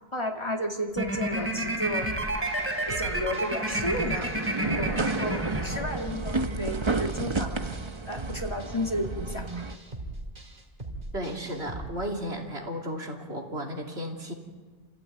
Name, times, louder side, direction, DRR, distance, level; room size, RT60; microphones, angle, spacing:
voice 1, 0.1-2.1 2.8-7.6 8.1-9.5, equal, 25° left, 2 dB, 2.5 m, -32 dB
sound 1, 0.9-6.2, right 1 dB, 10° right, 3.2 m, -30 dB
sound 2, 2.0-11.9, right 2 dB, 50° right, 3.2 m, -39 dB
sound 3, 3.7-9.8, right 3 dB, 30° right, 1.0 m, -32 dB
voice 2, 11.1-14.3, equal, 90° right, 1 dB, 3.2 m, -34 dB
29.5 x 15.5 x 9.3 m, 1.5 s
omnidirectional pair, 1.1 m